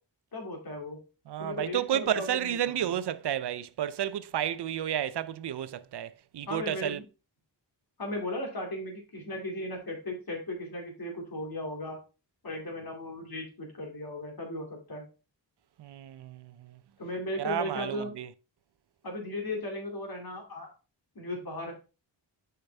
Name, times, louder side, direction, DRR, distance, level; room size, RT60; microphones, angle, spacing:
voice 1, 0.3-1.0 1.4-2.9 6.5-7.0 8.0-12.0 12.4-15.1 17.0-18.1 19.0-20.7 21.1-21.7, left 1 dB, 55° left, 2.6 m, -36 dB
voice 2, 1.3-7.0 15.8-16.7 17.4-18.3, right 10 dB, 65° right, 0.5 m, -31 dB
6.7 x 5.8 x 3.4 m
wide cardioid pair, 120°, 44 cm